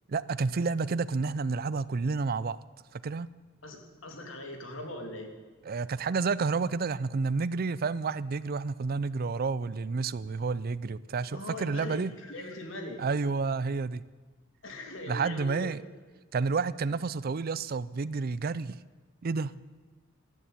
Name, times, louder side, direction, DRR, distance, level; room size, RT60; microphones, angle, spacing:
voice 1, 0.1-2.6 2.9-3.3 5.7-12.1 13.0-14.0 15.0-15.8 16.3-18.8 19.2-19.5, right 4 dB, 50° right, 18 dB, 0.5 m, -30 dB
voice 2, 3.6-5.3 11.3-13.0 14.6-15.7, left 1 dB, 70° left, 4 dB, 2.9 m, -40 dB
14.0 x 12.0 x 8.4 m, 1.4 s
head